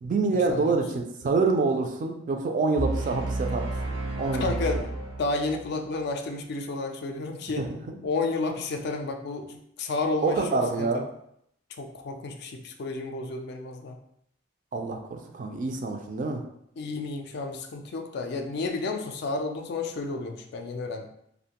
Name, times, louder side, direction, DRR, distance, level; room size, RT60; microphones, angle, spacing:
voice 1, 0.0-3.7 4.2-4.5 7.6-7.9 10.2-11.0 14.7-16.4, right 3 dB, 40° right, 4 dB, 0.3 m, -26 dB
sound 1, 2.8-5.7, right 2 dB, 80° right, 0.7 m, -31 dB
voice 2, 4.4-4.8 5.2-7.7 8.0-10.9 11.8-14.0 16.8-21.1, left 3 dB, 60° left, 4 dB, 0.3 m, -31 dB
2.5 x 2.1 x 2.8 m, 0.73 s
head